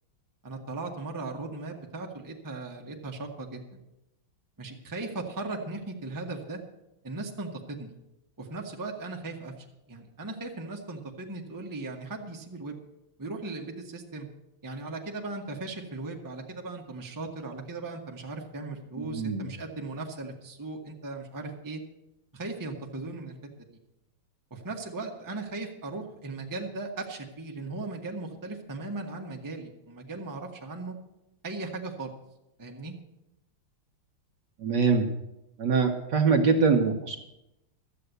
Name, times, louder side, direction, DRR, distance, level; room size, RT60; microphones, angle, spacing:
voice 1, 0.4-3.8 4.6-6.6 7.0-7.9 8.4-9.5 9.9-12.8 13.2-14.3 14.6-21.8 22.3-23.4 24.5-30.9 31.4-32.1 32.6-32.9, right 3 dB, 10° right, 1 dB, 1.0 m, -37 dB
voice 2, 19.0-19.5 34.6-35.1 35.6-37.2, right 5 dB, 60° right, 4 dB, 1.5 m, -23 dB
12.5 x 7.6 x 8.1 m, 0.90 s
omnidirectional pair, 2.3 m